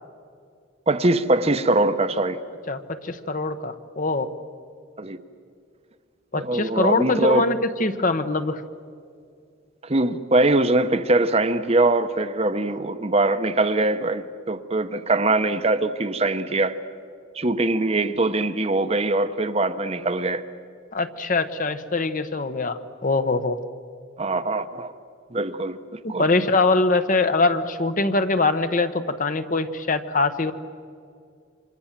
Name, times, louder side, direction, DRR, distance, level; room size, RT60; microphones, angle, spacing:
voice 1, 0.9-2.4 5.0-5.2 6.4-7.4 9.8-16.8 17.3-20.4 24.2-24.9 25.3-26.3, right 2 dB, 30° right, 0.9 m, -22 dB
voice 2, 2.7-4.3 6.3-8.6 20.9-23.6 26.0-30.5, left 3 dB, 40° left, 1.1 m, -23 dB
28.5 x 26.0 x 7.5 m
head